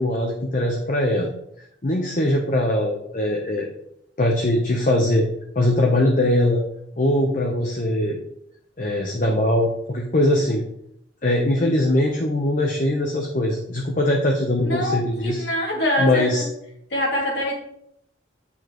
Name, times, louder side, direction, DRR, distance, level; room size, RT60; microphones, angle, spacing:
voice 1, 0.0-1.3 1.8-3.7 4.2-5.3 5.5-6.6 7.0-8.2 8.8-10.6 11.2-15.4 16.0-16.4, left 1 dB, 45° left, 1 dB, 0.9 m, -21 dB
voice 2, 14.6-16.5 16.9-17.5, left 1 dB, 65° left, -1 dB, 2.5 m, -24 dB
8.8 x 7.2 x 3.1 m, 0.76 s
head